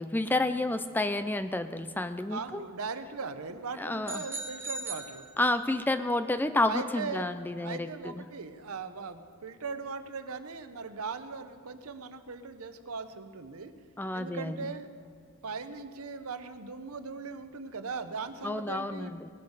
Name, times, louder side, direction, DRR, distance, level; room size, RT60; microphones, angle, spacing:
voice 1, 0.0-2.4 3.8-4.2 5.4-8.2 14.0-14.6 18.4-19.3, left 2 dB, 10° left, 11 dB, 0.3 m, -30 dB
voice 2, 2.3-5.3 6.7-7.3 7.6-13.7 14.1-14.9 15.4-19.1, right 4 dB, 80° right, 10 dB, 0.8 m, -39 dB
sound 1, 4.0-5.9, right 2 dB, 10° right, 1.1 m, -40 dB
18.5 x 10.5 x 4.8 m, 2.1 s
head